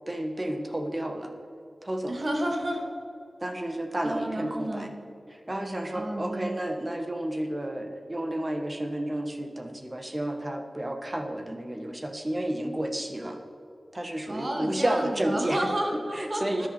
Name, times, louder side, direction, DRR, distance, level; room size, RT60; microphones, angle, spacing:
voice 1, 0.1-1.3 1.8-2.2 3.4-4.9 5.3-13.4 13.9-15.7 16.1-16.7, right 1 dB, 30° right, 5 dB, 1.4 m, -31 dB
voice 2, 2.1-2.8 4.0-4.9 5.9-6.6 14.3-16.7, right 1 dB, 50° right, 1 dB, 2.5 m, -31 dB
14.0 x 10.5 x 4.5 m, 2.7 s
wide cardioid pair, 55°, 0 cm